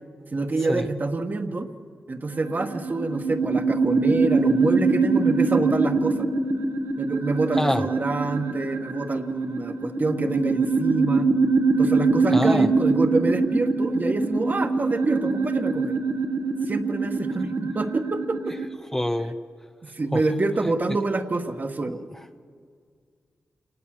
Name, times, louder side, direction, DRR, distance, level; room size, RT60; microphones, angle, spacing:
voice 1, 0.3-1.7 2.1-6.3 7.0-11.3 11.8-16.0 16.7-18.6 19.9-22.0, right 3 dB, 40° right, 6 dB, 1.4 m, -26 dB
sound 1, 2.3-18.6, right 3 dB, 80° right, 1.8 m, -23 dB
voice 2, 12.3-12.7 18.9-19.4 20.1-20.2, left 1 dB, 10° left, 6 dB, 0.6 m, -25 dB
28.5 x 19.0 x 7.6 m, 2.1 s
wide cardioid pair, 100°, 5 cm